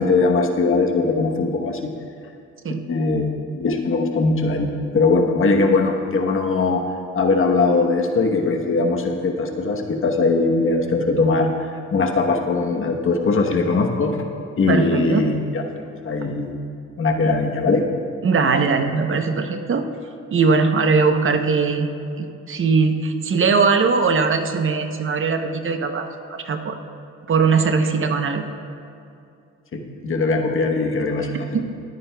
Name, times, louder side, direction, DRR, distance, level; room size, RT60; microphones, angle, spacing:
voice 1, 0.0-1.9 2.7-6.8 7.1-14.2 14.6-15.6 16.0-16.5 17.0-17.9 29.7-31.5, left 3 dB, 45° left, 3 dB, 1.0 m, -20 dB
voice 2, 14.7-15.2 17.2-17.3 18.2-19.8 20.3-21.9 22.2-26.8 27.3-28.5 31.5-31.6, right 4 dB, 45° right, 6 dB, 0.8 m, -20 dB
20.5 x 9.1 x 2.3 m, 2.5 s
cardioid pair, 90°, 30 cm